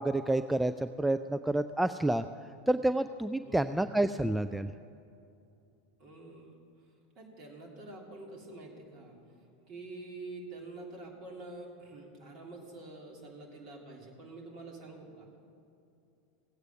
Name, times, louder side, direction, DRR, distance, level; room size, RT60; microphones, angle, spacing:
voice 1, 0.0-2.2 2.7-4.7, right 1 dB, 5° right, 10 dB, 0.3 m, -29 dB
voice 2, 3.4-4.0 6.0-6.5 7.1-9.2 9.6-15.4, right 2 dB, 45° right, -1 dB, 3.0 m, -47 dB
17.0 x 8.1 x 5.6 m, 2.6 s
figure-of-eight pair, 85°, 0 cm